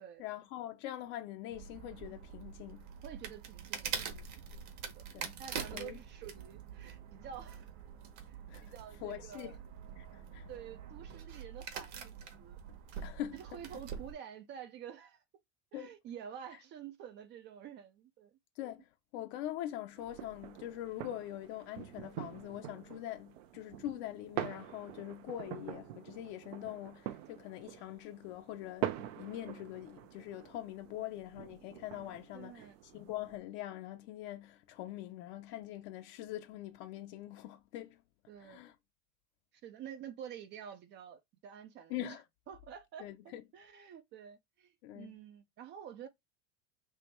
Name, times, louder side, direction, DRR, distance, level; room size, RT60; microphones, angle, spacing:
voice 1, 0.2-2.9 5.1-5.3 5.7-6.0 8.5-8.7 9.0-9.6 10.0-10.5 13.0-13.4 15.7-15.9 18.6-18.9 19.1-38.0 38.4-38.7 41.9-42.2 43.0-43.4 44.8-45.1, left 13 dB, 60° left, 0.7 m, -43 dB
sound 1, 1.5-14.1, right 7 dB, 50° right, 1.2 m, -45 dB
voice 2, 3.0-5.0 5.4-7.7 8.3-9.6 10.5-12.6 13.3-15.2 15.7-18.3 31.0-31.1 32.3-32.8 38.3-38.6 39.5-42.2 42.5-46.1, right 9 dB, 30° right, 0.4 m, -49 dB
sound 2, 20.0-33.4, right 13 dB, 75° right, 0.8 m, -45 dB
3.4 x 3.0 x 4.4 m
supercardioid pair, 150°, 38 cm